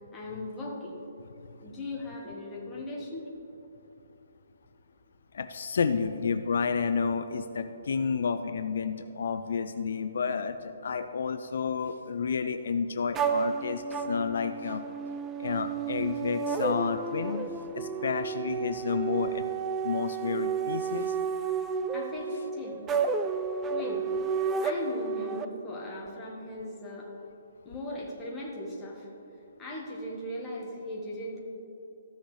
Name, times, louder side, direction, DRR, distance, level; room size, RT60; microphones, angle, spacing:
voice 1, 0.1-1.0 1.6-3.3 7.7-7.8 21.9-22.8 23.7-24.0 24.6-27.1 27.6-29.1 29.6-31.4, left 1 dB, 10° left, -4 dB, 1.4 m, -38 dB
voice 2, 5.3-14.8 15.4-17.5 17.7-19.4 19.8-21.1, left 5 dB, 65° left, 9 dB, 0.4 m, -30 dB
sound 1, 13.1-25.5, right 5 dB, 10° right, 0.3 m, -31 dB
14.5 x 6.4 x 3.2 m, 2.9 s
hypercardioid pair, 165°, 0 cm